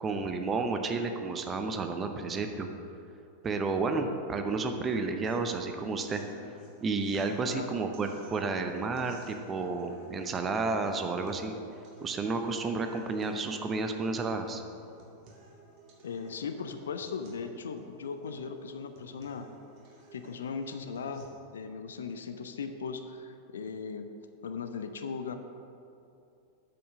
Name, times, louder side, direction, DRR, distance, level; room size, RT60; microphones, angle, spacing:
voice 1, 0.0-2.7 3.4-6.2 6.8-11.5 12.0-14.6, right 3 dB, 20° right, 6 dB, 0.7 m, -31 dB
sound 1, 5.2-21.3, right 1 dB, 40° right, 1.7 m, -55 dB
voice 2, 16.0-19.5 20.1-21.2 21.5-24.1 24.4-25.3, left 5 dB, 65° left, 8 dB, 0.6 m, -38 dB
8.6 x 5.5 x 6.5 m, 2.6 s
figure-of-eight pair, 90°, 0 cm